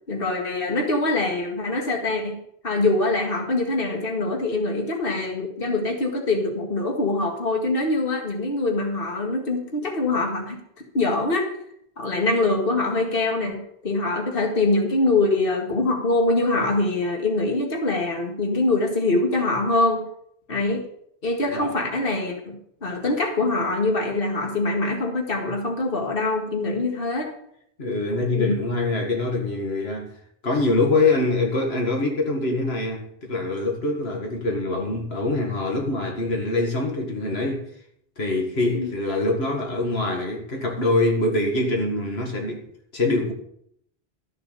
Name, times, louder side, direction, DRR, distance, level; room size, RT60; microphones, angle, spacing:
voice 1, 0.1-2.4 2.6-10.6 10.9-11.5 12.0-20.0 20.5-20.9 21.2-22.3 22.8-27.3 28.3-28.6 38.7-38.9, left 2 dB, 65° left, 2.1 m, -24 dB
voice 2, 27.8-30.1 30.4-37.7 38.2-42.6 42.9-43.3, left 2 dB, 85° left, 2.2 m, -24 dB
13.5 x 6.9 x 6.7 m
omnidirectional pair, 1.0 m